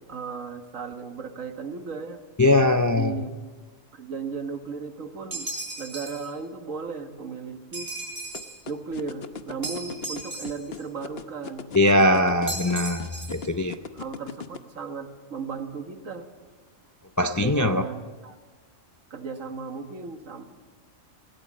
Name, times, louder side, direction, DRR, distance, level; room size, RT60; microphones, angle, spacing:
voice 1, 0.1-2.2 2.9-3.3 3.9-5.5 5.8-7.9 8.7-11.7 12.7-12.8 13.9-16.3 17.4-18.4 19.1-20.4, right 5 dB, 70° right, 7 dB, 1.9 m, -35 dB
voice 2, 2.4-3.1 11.7-13.8 17.2-17.8, left 1 dB, 30° left, 8 dB, 0.3 m, -21 dB
sound 1, 5.3-6.3 7.7-8.6 9.6-10.8 12.5-13.5, right 2 dB, 45° right, 4.7 m, -36 dB
sound 2, 8.3-14.6, left 6 dB, 50° left, 1.1 m, -37 dB
20.5 x 17.5 x 7.5 m, 1.4 s
omnidirectional pair, 1.4 m